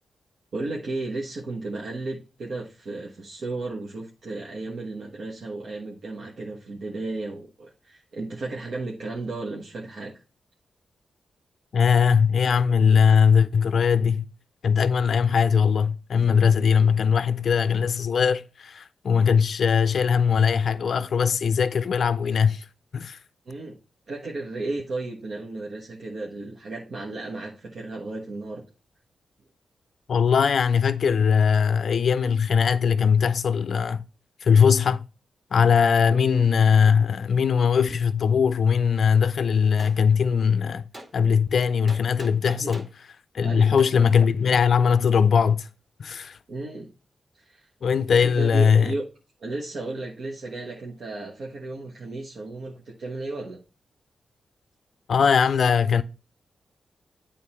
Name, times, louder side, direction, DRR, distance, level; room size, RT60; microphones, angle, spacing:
voice 1, 0.5-10.2 23.5-23.8 24.1-28.6 36.1-36.2 42.5-42.7 43.4-43.8 46.5-46.9 47.3-47.7 48.1-49.0 49.4-53.6, right 2 dB, 65° right, 1.2 m, -34 dB
voice 2, 11.7-14.3 14.6-22.6 22.9-23.2 30.1-34.0 34.4-35.0 35.5-40.8 41.1-42.9 43.3-45.7 46.0-46.4 47.8-48.9 55.1-56.0, left 6 dB, 70° left, 0.4 m, -20 dB
Gunshot gunfire, 39.8-40.0 40.9-41.1 41.9-43.0 43.8-43.9, right 1 dB, 35° right, 2.1 m, -42 dB
8.7 x 3.7 x 4.3 m
cardioid pair, 75°, 0 cm